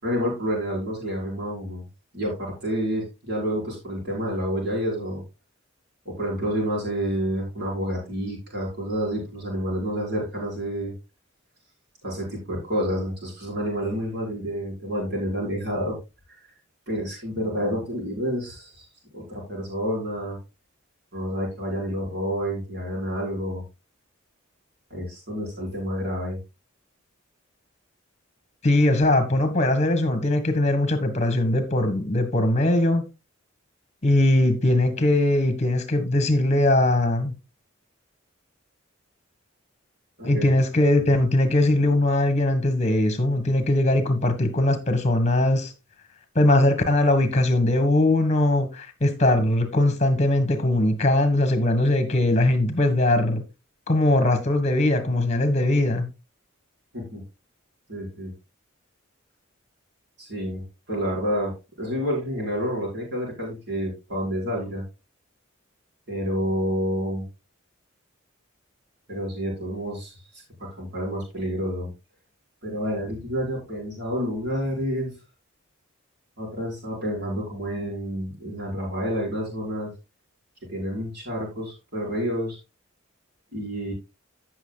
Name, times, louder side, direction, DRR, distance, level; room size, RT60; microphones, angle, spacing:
voice 1, 0.0-1.8 2.1-5.2 6.0-10.9 12.0-16.0 16.9-18.8 19.1-20.4 21.1-23.6 24.9-26.4 40.2-40.4 56.9-57.2 57.9-58.3 60.2-64.8 66.1-67.2 69.1-70.2 70.6-71.9 72.6-75.1 76.4-79.9 80.7-82.6 83.5-83.9, equal, 55° right, 5.1 m, -29 dB
voice 2, 28.6-33.1 34.0-37.3 40.2-45.7 46.3-53.4 53.9-56.1, left 1 dB, 30° left, 1.5 m, -21 dB
15.5 x 6.3 x 2.3 m
head